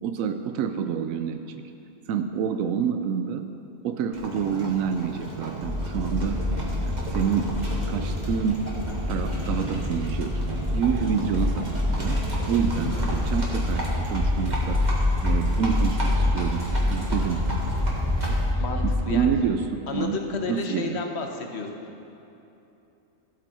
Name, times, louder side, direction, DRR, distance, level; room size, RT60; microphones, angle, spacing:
voice 1, 0.0-1.6 2.1-3.5 3.8-6.4 6.8-7.6 7.9-8.7 9.1-10.4 10.7-12.2 12.5-14.9 15.2-17.6 18.8-21.0, right 7 dB, 90° right, 7 dB, 1.0 m, -28 dB
Livestock farm animals working animals, 4.1-18.5, right 1 dB, 35° right, 1.7 m, -34 dB
sound 1, 5.6-19.4, left 1 dB, 15° right, 1.0 m, -27 dB
voice 2, 12.8-13.2 18.6-19.3 19.9-21.7, left 4 dB, 55° left, 3 dB, 1.2 m, -31 dB
15.0 x 8.3 x 4.3 m, 2.9 s
omnidirectional pair, 1.4 m